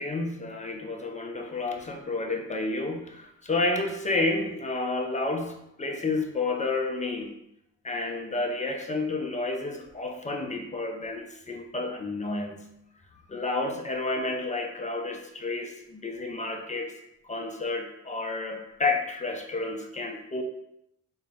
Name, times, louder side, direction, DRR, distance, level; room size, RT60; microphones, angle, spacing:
voice 1, 0.0-7.4 7.8-12.7 13.3-16.9 17.2-20.4, left 2 dB, 25° left, 2 dB, 0.6 m, -30 dB
4.8 x 2.2 x 3.5 m, 0.82 s
cardioid pair, 90°, 30 cm